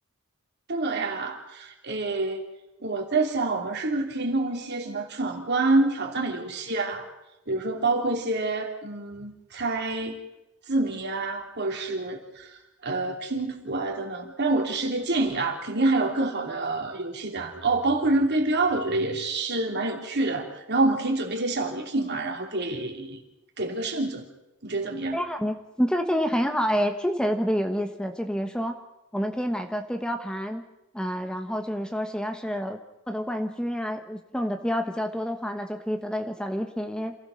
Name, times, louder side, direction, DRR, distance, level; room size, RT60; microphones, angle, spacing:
voice 1, 0.7-2.4 2.8-7.1 7.5-10.2 10.7-23.2 23.6-24.2 24.6-25.2, right 2 dB, 50° right, 3 dB, 3.1 m, -27 dB
voice 2, 25.1-28.8 29.1-30.6 30.9-32.8 33.1-37.1, equal, 5° left, 6 dB, 1.1 m, -28 dB
27.0 x 15.5 x 6.5 m, 0.93 s
head